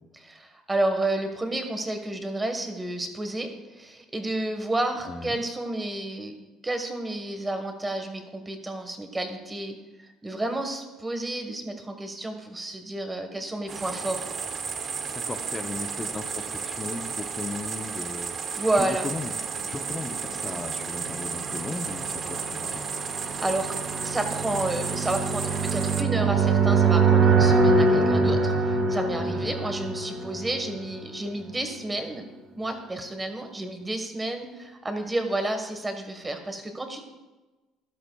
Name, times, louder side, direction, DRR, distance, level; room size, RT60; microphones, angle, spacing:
voice 1, 0.2-6.3 6.6-9.7 10.2-14.3 18.5-19.1 23.2-23.8 24.0-32.3 32.5-37.0, right 2 dB, 15° right, 6 dB, 1.3 m, -30 dB
voice 2, 5.1-5.4 15.1-19.4 19.7-22.9 29.4-29.5, left 3 dB, 20° left, 7 dB, 0.6 m, -36 dB
sound 1, 13.7-26.0, right 5 dB, 35° right, 0.7 m, -33 dB
sound 2, 20.3-31.1, right 4 dB, 50° right, 1.9 m, -24 dB
13.0 x 11.5 x 2.3 m, 1.2 s
cardioid pair, 125°, 0 cm